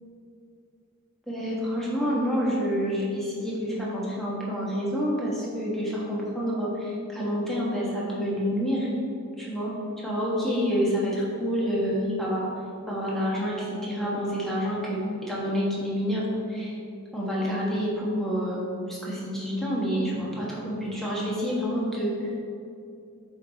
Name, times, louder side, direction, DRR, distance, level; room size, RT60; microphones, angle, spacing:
voice 1, 1.3-8.9 9.4-9.7 10.0-12.5 12.9-16.7 17.1-22.3, equal, ahead, -6 dB, 1.3 m, -28 dB
7.5 x 3.9 x 4.0 m, 2.6 s
head